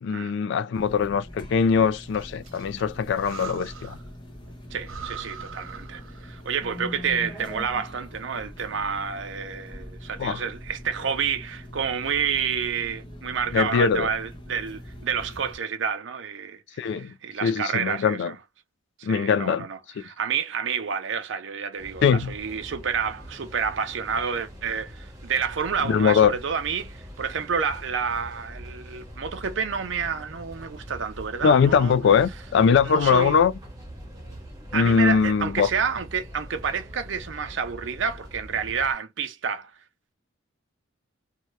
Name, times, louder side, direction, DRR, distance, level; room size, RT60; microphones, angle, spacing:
voice 1, 0.0-4.0 10.2-10.4 13.5-14.1 16.8-17.1 17.4-18.3 19.0-19.7 20.0-20.1 22.0-22.3 25.8-26.3 31.4-33.5 34.7-35.7, left 6 dB, 60° left, 0.3 m, -21 dB
sound 1, 0.7-15.6, left 1 dB, 25° left, 0.9 m, -42 dB
Breathing, 2.0-4.2 4.5-4.6 4.8-6.5, right 6 dB, 85° right, 0.9 m, -41 dB
voice 2, 4.7-18.3 19.0-32.0 32.9-33.4 34.7-39.7, right 6 dB, 60° right, 0.5 m, -29 dB
sound 2, 21.8-38.9, equal, 20° right, 1.1 m, -43 dB
2.7 x 2.2 x 3.2 m
head